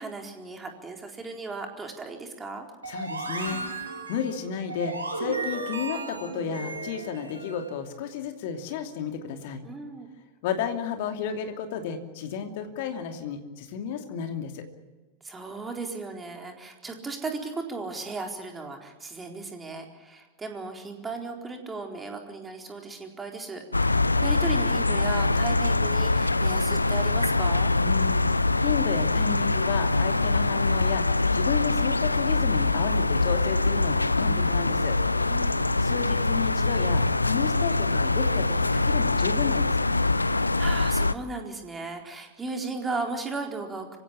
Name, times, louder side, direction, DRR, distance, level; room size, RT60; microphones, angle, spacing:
voice 1, 0.0-2.7 9.6-10.1 15.2-27.7 35.1-35.7 40.2-44.0, right 3 dB, 15° right, 3 dB, 4.1 m, -36 dB
voice 2, 2.8-3.6 4.1-9.6 10.4-14.6 27.8-28.3 28.6-31.0 31.3-35.0 35.8-39.8, left 7 dB, 50° left, 6 dB, 2.7 m, -32 dB
sound 1, 2.8-7.7, right 3 dB, 80° right, 4.3 m, -35 dB
sound 2, 23.7-41.1, left 3 dB, 80° left, 0.6 m, -24 dB
26.0 x 16.5 x 8.6 m, 1.3 s
figure-of-eight pair, 90°, 0 cm